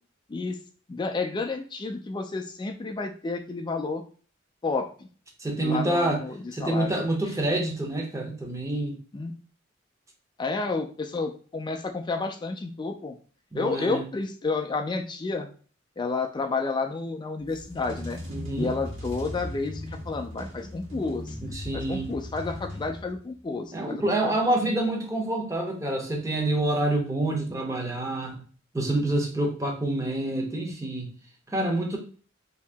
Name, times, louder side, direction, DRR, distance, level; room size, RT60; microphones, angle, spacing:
voice 1, 0.9-4.0 4.6-5.1 5.6-7.0 9.1-9.3 10.4-13.2 13.5-15.5 16.0-18.2 18.6-21.4 21.7-24.3 24.6-24.7, left 3 dB, 25° left, 5 dB, 0.3 m, -31 dB
voice 2, 5.4-6.2 6.5-9.0 13.5-14.1 18.3-18.7 21.4-22.1 23.7-28.4 28.7-31.2 31.5-32.0, right 1 dB, 15° right, 1 dB, 0.7 m, -27 dB
sound 1, 17.4-23.4, left 1 dB, 70° right, 1.4 m, -38 dB
2.8 x 2.7 x 3.3 m, 0.40 s
head